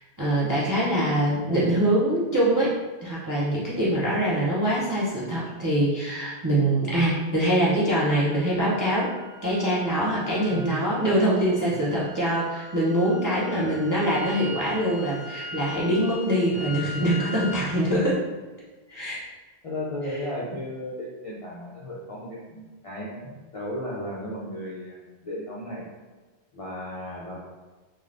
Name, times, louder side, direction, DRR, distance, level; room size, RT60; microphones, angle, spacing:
voice 1, 0.2-2.7 3.0-9.1 9.4-18.2 18.9-19.2, right 1 dB, 35° right, -8 dB, 0.3 m, -24 dB
sound 1, 8.1-17.7, left 2 dB, 70° right, 1.0 m, -41 dB
voice 2, 13.5-13.8 16.5-17.0 19.6-25.8 26.5-27.5, left 1 dB, 55° left, -6 dB, 0.3 m, -35 dB
2.5 x 2.3 x 3.2 m, 1.3 s
omnidirectional pair, 1.1 m